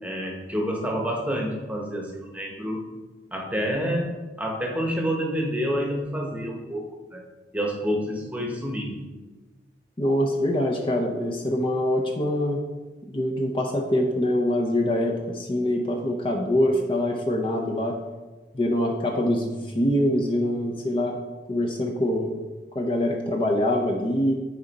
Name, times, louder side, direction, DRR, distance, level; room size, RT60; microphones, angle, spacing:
voice 1, 0.0-2.8 3.3-7.2 7.5-9.0, equal, 10° right, 0 dB, 1.0 m, -28 dB
voice 2, 10.0-12.6 13.1-18.0 18.5-21.2 21.5-22.3 22.7-24.3, left 1 dB, 30° left, 1 dB, 0.6 m, -24 dB
9.5 x 3.9 x 4.1 m, 1.2 s
head